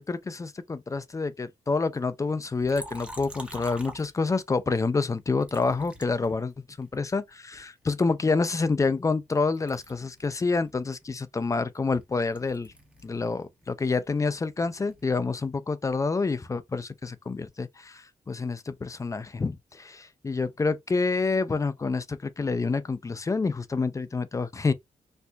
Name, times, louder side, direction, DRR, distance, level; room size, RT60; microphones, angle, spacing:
voice 1, 0.0-12.7 13.0-24.7, left 4 dB, 25° left, 0.4 m, -28 dB
Liquid, 2.6-4.6 5.4-7.0 7.5-9.3 9.5-13.2 13.5-15.1, right 1 dB, 10° right, 0.7 m, -47 dB
4.3 x 2.5 x 2.2 m
wide cardioid pair, 120°, 14 cm